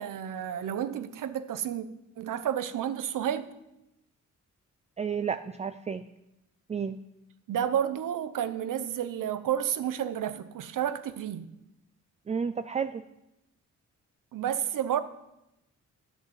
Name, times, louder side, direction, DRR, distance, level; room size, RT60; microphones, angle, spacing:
voice 1, 0.0-1.9 2.2-3.5 7.5-11.5 14.3-15.0, right 10 dB, 85° right, 1.0 m, -31 dB
voice 2, 5.0-6.0 6.7-7.0 12.3-13.0, right 6 dB, 20° right, 0.4 m, -31 dB
13.5 x 6.8 x 9.0 m
wide cardioid pair, 160°, 31 cm